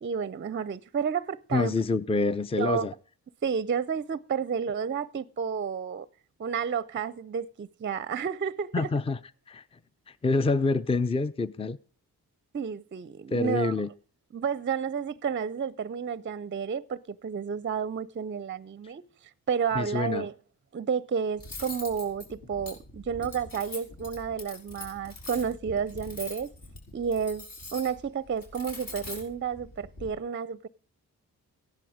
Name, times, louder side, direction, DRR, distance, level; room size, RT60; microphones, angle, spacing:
voice 1, 0.0-1.8 2.6-2.9 3.4-6.1 6.4-8.9 12.5-13.7 14.3-20.3 20.7-26.5 26.9-30.7, right 6 dB, 30° right, 0.5 m, -31 dB
voice 2, 1.5-2.9 8.7-9.2 9.5-9.6 10.1-11.8 13.3-13.9 19.7-20.3, left 3 dB, 15° left, 0.5 m, -26 dB
Cutlery silverware, 21.4-30.1, left 2 dB, 65° left, 4.6 m, -43 dB
14.5 x 10.5 x 5.0 m
cardioid pair, 60°, 37 cm